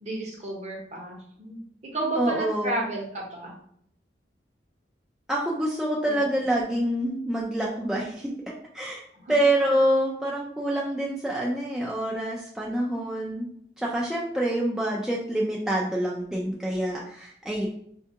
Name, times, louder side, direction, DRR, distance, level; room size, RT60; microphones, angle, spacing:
voice 1, 0.0-1.6 1.9-3.5 6.0-6.2 9.2-9.3, right 2 dB, 40° right, -1 dB, 0.8 m, -32 dB
voice 2, 2.2-2.9 5.3-8.3 8.7-9.0 9.3-13.5 13.8-17.7, right 1 dB, 5° right, -4 dB, 0.3 m, -26 dB
4.4 x 2.3 x 2.7 m, 0.66 s
head